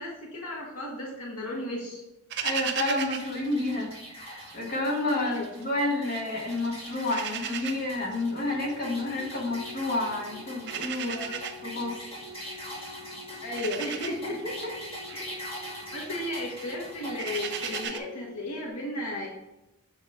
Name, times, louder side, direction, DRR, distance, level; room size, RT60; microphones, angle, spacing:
voice 1, 0.0-2.0 5.2-5.5 11.0-11.4 13.4-14.4 15.1-15.5 15.9-19.3, left 1 dB, 80° left, -3 dB, 1.1 m, -35 dB
sound 1, 2.3-4.6 4.9-6.2 6.5-18.0, right 8 dB, 50° right, 0.5 m, -38 dB
voice 2, 2.4-11.3 11.6-12.0 14.6-14.7, left 2 dB, 40° left, -2 dB, 1.3 m, -30 dB
sound 2, 3.0-17.9, equal, 25° left, 1.8 m, -42 dB
sound 3, 8.5-18.7, left 2 dB, 80° right, 1.5 m, -47 dB
7.7 x 3.0 x 5.3 m, 0.98 s
head